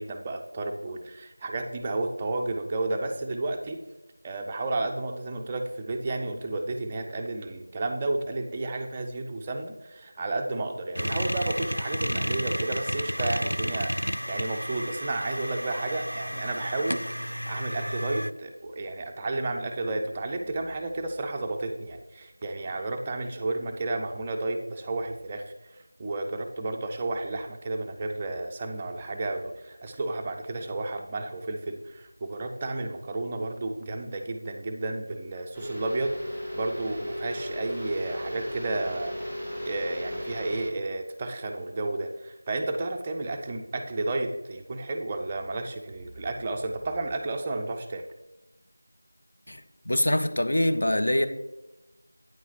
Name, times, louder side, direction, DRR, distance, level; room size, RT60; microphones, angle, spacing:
voice 1, 0.0-3.8 4.2-17.0 17.5-39.2 39.6-48.0, right 2 dB, 15° right, 3 dB, 0.4 m, -32 dB
sound 1, 11.0-18.3, equal, 90° right, 0.3 m, -31 dB
sound 2, 35.5-40.6, equal, 5° left, 1.4 m, -35 dB
voice 2, 49.5-51.3, left 1 dB, 50° left, 7 dB, 0.6 m, -24 dB
9.1 x 5.5 x 2.8 m, 1.0 s
figure-of-eight pair, 170°, 0 cm